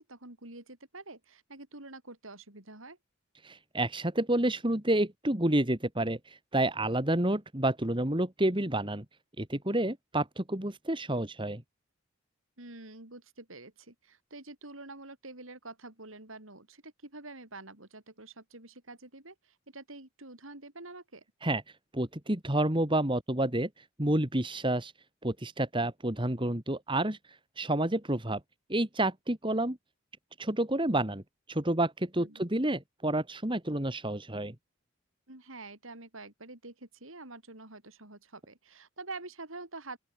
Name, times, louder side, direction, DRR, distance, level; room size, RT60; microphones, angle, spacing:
voice 1, 0.0-3.0 12.6-21.2 32.2-32.4 35.3-40.0, right 2 dB, 80° right, 5.6 m, -47 dB
voice 2, 3.4-9.0 9.4-11.6 21.4-21.6 21.9-24.9 25.2-27.2 27.6-28.4 28.7-29.8 30.4-31.2 31.5-34.5, right 1 dB, 25° right, 2.3 m, -29 dB
open air
head